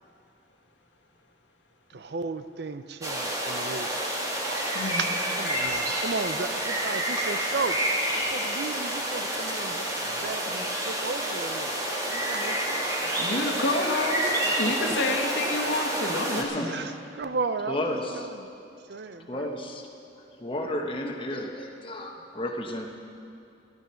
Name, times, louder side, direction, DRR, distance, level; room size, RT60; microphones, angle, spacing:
voice 1, 1.9-7.8 8.1-9.9 10.2-11.8 12.0-13.0 14.4-14.9 15.5-15.7 16.0-18.5 18.9-19.5, right 4 dB, 60° right, 11 dB, 0.6 m, -35 dB
sound 1, 3.0-16.4, right 1 dB, 20° right, 1.9 m, -29 dB
voice 2, 4.7-5.1 10.0-10.1 10.6-10.7 13.2-16.8, left 2 dB, 90° left, 1 dB, 1.6 m, -29 dB
voice 3, 16.4-16.7 17.7-18.3 19.3-19.9 20.3-22.9, left 1 dB, 30° left, 2 dB, 1.2 m, -33 dB
14.5 x 12.5 x 5.7 m, 2.6 s
head